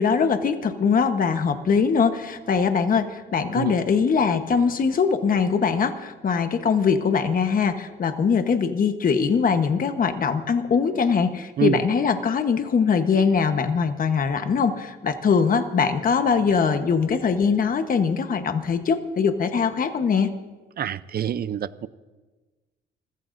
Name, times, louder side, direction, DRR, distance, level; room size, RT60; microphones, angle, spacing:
voice 1, 0.0-20.3, left 6 dB, 45° left, 7 dB, 1.2 m, -22 dB
voice 2, 20.8-21.9, right 9 dB, 50° right, 16 dB, 0.6 m, -26 dB
29.5 x 15.5 x 2.6 m, 1.3 s
cardioid pair, 90°, 20 cm